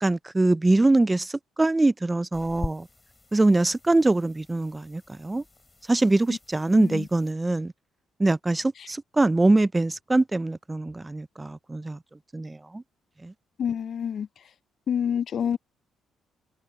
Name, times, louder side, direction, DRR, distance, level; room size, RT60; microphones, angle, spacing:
voice 1, 0.0-2.9 3.3-5.4 5.9-7.7 8.2-12.0 12.3-12.8 13.2-13.3, right 2 dB, 15° right, 0.4 m, -23 dB
sound 1, 2.3-7.3, left 3 dB, 20° left, 5.5 m, -43 dB
voice 2, 6.7-7.1 13.6-14.3 14.9-15.6, left 8 dB, 55° left, 0.4 m, -27 dB
cardioid pair, 100°, 0 cm